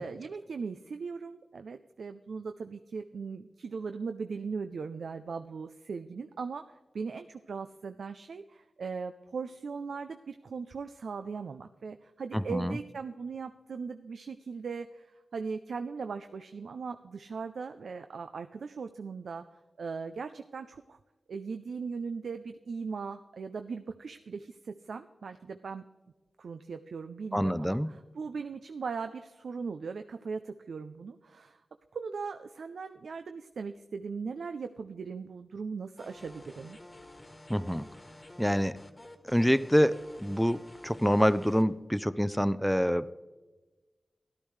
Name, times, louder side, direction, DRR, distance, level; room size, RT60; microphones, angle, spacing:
voice 1, 0.0-21.0 21.3-25.8 26.4-31.6 31.9-36.8, right 5 dB, 85° right, 8 dB, 0.4 m, -39 dB
voice 2, 12.3-12.8 27.3-27.9 37.5-37.9 38.4-38.8 39.3-43.1, equal, 5° left, 16 dB, 0.4 m, -26 dB
sound 1, 36.0-41.6, left 1 dB, 30° left, 1.4 m, -51 dB
13.5 x 12.0 x 3.2 m, 1.2 s
cardioid pair, 55°, 0 cm